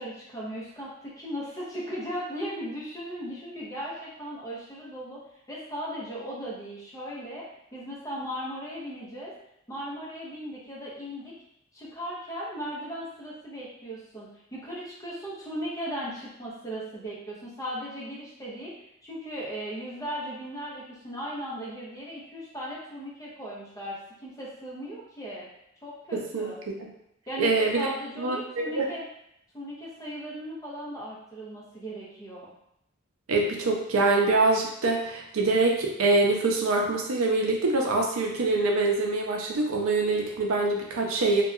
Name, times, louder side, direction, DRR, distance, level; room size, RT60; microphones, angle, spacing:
voice 1, 0.0-9.3 9.7-11.3 11.7-18.7 19.0-25.5 25.8-26.6 27.3-29.0 29.5-32.5, equal, 15° left, -6 dB, 0.7 m, -37 dB
voice 2, 26.1-26.9 27.4-27.9 28.2-28.4 28.7-28.9 33.3-41.4, right 3 dB, 85° right, 0 dB, 0.5 m, -24 dB
2.7 x 2.2 x 2.4 m, 0.79 s
head